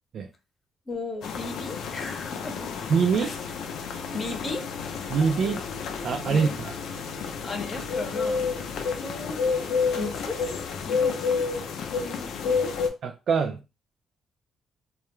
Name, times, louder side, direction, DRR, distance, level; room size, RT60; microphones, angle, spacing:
voice 1, 0.9-2.7 3.2-3.4 4.1-4.7 6.3-6.5 7.4-8.5 9.0-9.4 10.0-10.4 10.8-11.4 12.0-12.7, left 3 dB, 35° left, 4 dB, 0.8 m, -35 dB
sound 1, 1.2-12.9, left 5 dB, 75° left, 0.4 m, -30 dB
voice 2, 2.9-3.3 5.1-5.6 6.0-6.7 13.0-13.6, right 5 dB, 60° right, 3 dB, 0.4 m, -24 dB
2.3 x 2.1 x 3.0 m, 0.29 s
cardioid pair, 90°, 0 cm